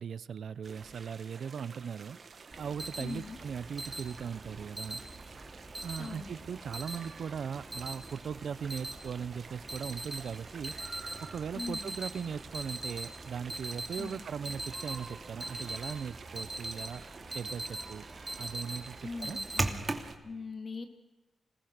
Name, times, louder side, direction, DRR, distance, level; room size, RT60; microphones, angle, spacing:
voice 1, 0.0-2.2 2.6-5.0 5.8-10.8 11.2-18.0 18.4-19.4, right 7 dB, 75° right, 18 dB, 0.6 m, -39 dB
sound 1, 0.6-20.2, right 5 dB, 55° right, 1.9 m, -50 dB
Alarm, 2.5-20.1, right 2 dB, 25° right, 2.5 m, -41 dB
voice 2, 3.0-3.4 6.0-6.4 11.5-11.9 14.0-14.2 19.0-19.8 20.2-20.9, left 4 dB, 45° left, 5 dB, 3.1 m, -41 dB
26.0 x 19.5 x 6.6 m, 1.1 s
cardioid pair, 65°, 0 cm